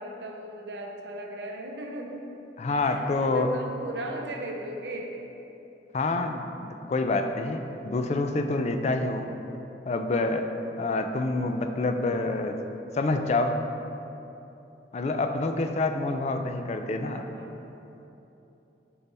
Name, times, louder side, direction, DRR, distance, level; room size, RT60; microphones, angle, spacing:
voice 1, 0.0-2.3 2.8-5.3 17.0-17.6, right 1 dB, 75° right, 2 dB, 0.7 m, -37 dB
voice 2, 2.6-3.5 5.9-9.3 9.9-10.4 10.8-12.6 12.9-13.6 14.9-17.2, left 2 dB, 40° left, 6 dB, 0.3 m, -27 dB
6.6 x 5.6 x 3.4 m, 3.0 s
head